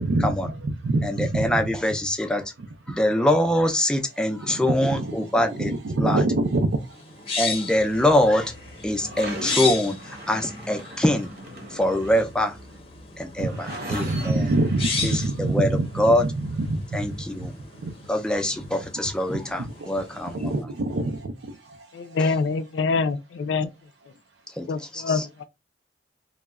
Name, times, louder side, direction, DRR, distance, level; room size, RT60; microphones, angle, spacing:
voice 1, 0.0-1.7 4.4-7.0 13.4-16.3 16.6-17.1 17.4-17.5 17.8-17.9 19.3-19.9 20.3-21.8, right 2 dB, 85° right, 0.4 m, -26 dB
voice 2, 1.0-2.5 2.9-6.2 7.4-8.5 8.8-11.3 11.7-12.6 13.2-14.5 15.0-16.3 16.9-17.5 18.1-20.7 22.2-22.3 24.6-25.3, left 1 dB, 5° left, 0.3 m, -24 dB
sound 1, 6.8-20.6, left 4 dB, 35° left, 0.6 m, -36 dB
sound 2, 7.5-15.3, equal, 55° right, 0.8 m, -40 dB
voice 3, 21.9-23.7 24.7-25.4, left 4 dB, 85° left, 0.3 m, -25 dB
2.2 x 2.0 x 3.4 m
head